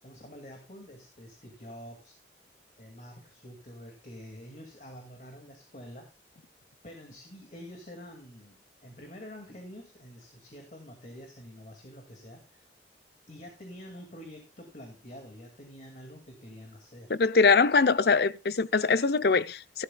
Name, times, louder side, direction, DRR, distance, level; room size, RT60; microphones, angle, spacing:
voice 1, 0.0-2.1 2.8-6.1 6.8-12.7 13.3-17.1 17.7-17.8, equal, 45° left, 2.2 m, -47 dB
voice 2, 17.1-19.8, left 4 dB, 60° left, 0.6 m, -23 dB
16.0 x 11.5 x 2.3 m
head